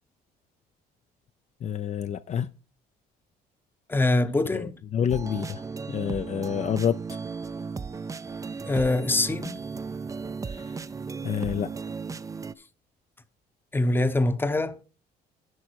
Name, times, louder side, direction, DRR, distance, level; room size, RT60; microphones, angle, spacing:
voice 1, 1.6-2.5 4.5-7.2 10.5-10.8 11.2-11.7, left 8 dB, 40° left, 0.5 m, -29 dB
voice 2, 3.9-4.8 8.6-9.6 13.7-14.8, left 2 dB, 10° left, 0.8 m, -24 dB
sound 1, 5.1-12.5, right 5 dB, 20° right, 0.5 m, -35 dB
11.0 x 5.7 x 4.5 m
cardioid pair, 110°, 17 cm